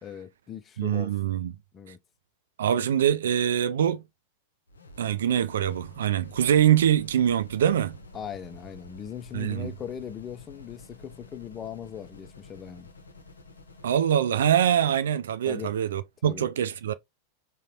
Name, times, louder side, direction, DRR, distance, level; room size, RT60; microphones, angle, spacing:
voice 1, 0.0-1.1 1.7-2.0 8.1-12.9 15.5-15.7 16.2-16.5, left 9 dB, 25° left, 0.4 m, -39 dB
voice 2, 0.8-1.5 2.6-4.0 5.0-8.0 9.3-9.7 13.8-16.9, right 10 dB, 60° right, 0.3 m, -24 dB
sound 1, 4.7-14.0, left 2 dB, 75° left, 0.6 m, -49 dB
3.8 x 2.1 x 3.0 m
figure-of-eight pair, 90°, 0 cm